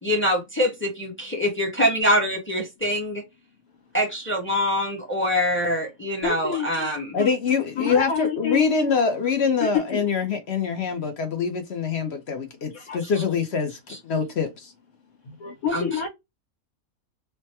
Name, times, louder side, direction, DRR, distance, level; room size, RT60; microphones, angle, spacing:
voice 1, 0.0-3.2 3.9-7.2 13.9-14.0 15.7-15.9, equal, 10° left, 0.7 m, -24 dB
voice 2, 6.2-6.7 7.2-7.3 7.7-8.7 9.6-10.0 12.7-13.0 15.2-16.1, left 7 dB, 80° left, 1.7 m, -27 dB
voice 3, 7.1-14.7, left 5 dB, 60° left, 0.8 m, -25 dB
3.3 x 2.1 x 2.8 m
omnidirectional pair, 1.5 m